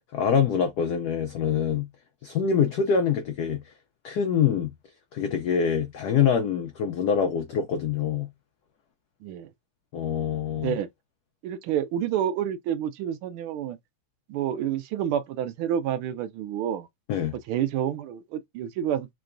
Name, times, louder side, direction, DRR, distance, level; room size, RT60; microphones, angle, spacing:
voice 1, 0.1-1.9 2.2-3.6 4.0-4.7 5.1-8.3 9.9-10.8 17.1-17.3, left 7 dB, 90° left, 0.8 m, -25 dB
voice 2, 9.2-9.5 10.6-10.9 11.4-13.8 14.3-16.9 17.3-19.1, right 10 dB, 80° right, 1.5 m, -29 dB
3.9 x 3.2 x 2.5 m
omnidirectional pair, 2.4 m